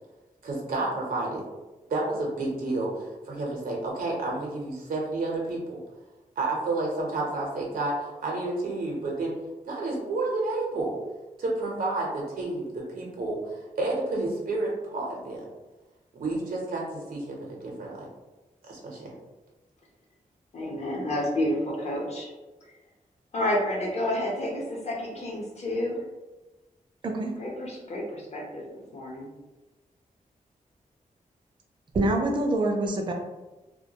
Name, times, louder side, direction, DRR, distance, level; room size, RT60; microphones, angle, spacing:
voice 1, 0.4-1.4 1.9-5.8 6.4-9.3 9.7-10.9 11.4-15.4 16.2-18.1 18.7-19.1, right 2 dB, 85° right, -2 dB, 0.6 m, -30 dB
voice 2, 20.5-22.3 23.3-26.0 27.4-28.7 28.9-29.3, left 1 dB, 50° left, -2 dB, 0.7 m, -30 dB
voice 3, 31.9-33.1, right 2 dB, 35° right, 1 dB, 0.4 m, -25 dB
2.2 x 2.2 x 2.7 m, 1.1 s
wide cardioid pair, 105°, 14 cm